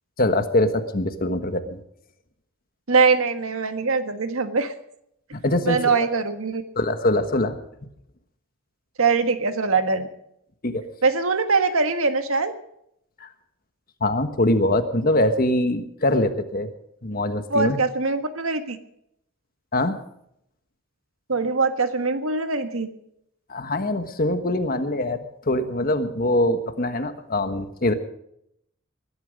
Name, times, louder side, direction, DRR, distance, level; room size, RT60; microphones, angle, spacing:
voice 1, 0.2-1.8 5.3-5.8 6.7-7.6 10.6-10.8 13.2-13.3 14.0-16.7 17.0-17.8 19.7-20.0 23.5-27.9, left 1 dB, 45° left, 8 dB, 1.4 m, -23 dB
voice 2, 2.9-4.7 5.6-6.6 9.0-10.1 11.0-12.5 17.5-18.8 21.3-22.9, right 4 dB, 75° right, 8 dB, 1.6 m, -22 dB
21.0 x 12.0 x 5.3 m, 0.75 s
head